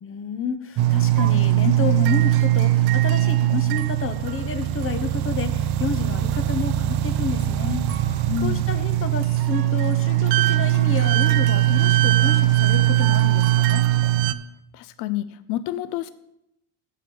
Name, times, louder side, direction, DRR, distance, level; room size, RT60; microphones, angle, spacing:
voice 1, 0.0-13.8, left 6 dB, 30° left, 10 dB, 0.7 m, -30 dB
sound 1, 0.8-14.3, right 14 dB, 60° right, 0.6 m, -20 dB
voice 2, 8.3-8.7 14.7-16.1, left 12 dB, 65° left, 14 dB, 0.6 m, -28 dB
6.8 x 6.5 x 7.0 m, 0.83 s
cardioid pair, 130°, 44 cm